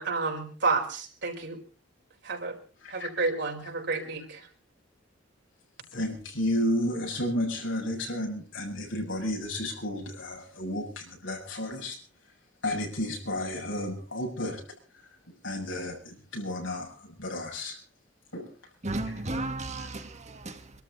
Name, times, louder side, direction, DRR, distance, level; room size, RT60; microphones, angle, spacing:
voice 1, 0.0-1.6 2.2-2.6 2.9-4.5, right 3 dB, 65° right, 4.7 m, -30 dB
voice 2, 5.9-12.0 12.6-14.6 15.3-17.8 18.3-18.5, left 1 dB, 80° left, 7.1 m, -32 dB
voice 3, 18.8-20.8, right 2 dB, 40° right, 2.3 m, -34 dB
26.0 x 13.0 x 4.1 m
head